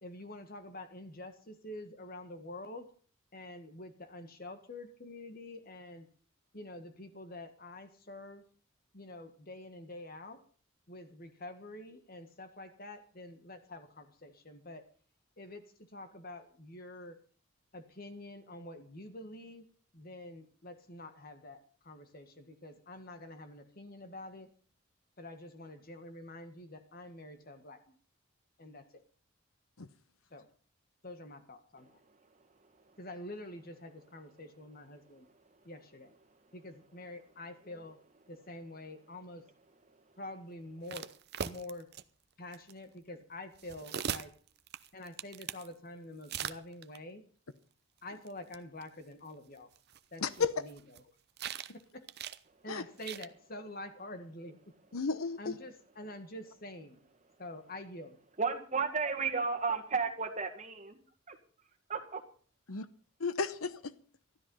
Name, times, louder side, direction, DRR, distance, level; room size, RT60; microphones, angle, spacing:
voice 1, 0.0-2.9 3.3-6.1 6.5-8.5 8.9-10.4 10.9-14.9 15.4-17.2 17.7-19.7 19.9-24.5 25.2-28.0 28.6-29.0 30.3-30.5 31.0-32.0 33.0-35.3 35.6-36.2 36.5-38.0 38.3-39.5 40.2-41.1 41.4-41.9 42.4-44.4 44.9-47.3 48.0-49.7 50.1-50.8 51.7-52.1 52.6-54.8 55.4-57.0 57.4-58.2, left 1 dB, 45° left, 8 dB, 1.8 m, -47 dB
voice 2, 31.8-33.0 35.0-35.7 36.3-36.5 39.9-40.2 52.5-52.6 57.3-57.4 58.4-61.0 61.3-61.4 61.9-62.2, right 5 dB, 35° right, 5 dB, 1.8 m, -36 dB
sound 1, 40.9-42.0 42.5-42.7 43.5-45.7 46.2-47.0 48.3-48.4 48.5-48.6 48.8-48.9 49.8-51.0 51.4-51.8 52.1-52.4 53.0-53.3, right 8 dB, 50° right, 0.7 m, -40 dB
voice 3, 50.2-50.5 52.7-52.8 54.9-55.5 62.7-62.9 63.2-63.9, left 5 dB, 80° left, 14 dB, 0.9 m, -33 dB
13.0 x 12.5 x 5.6 m, 0.43 s
head